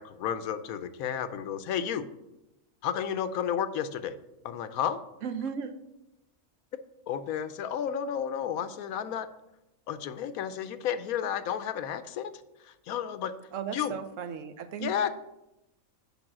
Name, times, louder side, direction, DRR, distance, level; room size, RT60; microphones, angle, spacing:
voice 1, 0.0-2.1 2.8-4.2 4.4-5.0 7.1-9.3 9.9-13.3 13.7-13.9 14.8-15.1, left 9 dB, 85° left, 12 dB, 1.1 m, -32 dB
voice 2, 5.2-5.8 13.5-14.9, right 7 dB, 70° right, 10 dB, 0.9 m, -35 dB
7.1 x 5.1 x 6.1 m, 0.91 s
omnidirectional pair, 1.5 m